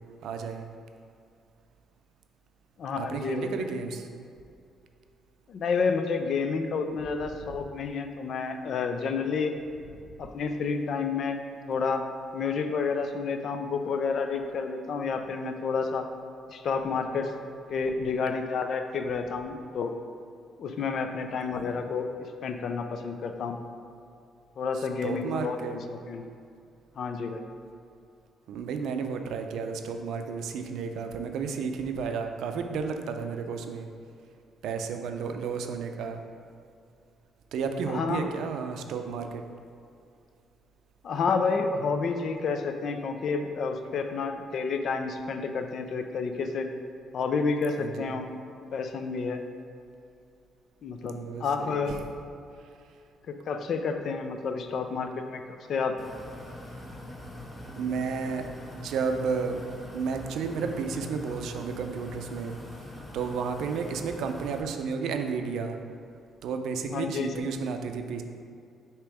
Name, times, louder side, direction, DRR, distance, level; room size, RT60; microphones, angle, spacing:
voice 1, 0.2-0.7 3.0-4.1 7.5-7.6 21.5-21.8 24.7-25.8 28.5-33.9 34.6-36.2 37.5-39.5 47.8-48.1 51.1-52.0 52.6-52.7 57.8-59.6 59.9-62.9 63.1-65.8 66.4-68.2, right 5 dB, 75° right, 6 dB, 0.5 m, -32 dB
voice 2, 2.8-3.7 5.5-9.5 10.2-11.4 11.7-12.1 12.3-16.0 16.5-17.3 17.7-19.9 20.6-22.1 22.4-23.6 24.6-26.2 27.0-27.4 37.9-38.3 41.0-46.7 47.1-48.3 48.7-49.4 50.8-51.9 53.3-55.4 55.7-56.0 66.9-67.4, left 5 dB, 55° left, 7 dB, 0.4 m, -30 dB
sound 1, 56.0-64.6, left 1 dB, 20° left, 0.7 m, -42 dB
6.7 x 3.0 x 4.8 m, 2.4 s
cardioid pair, 125°, 0 cm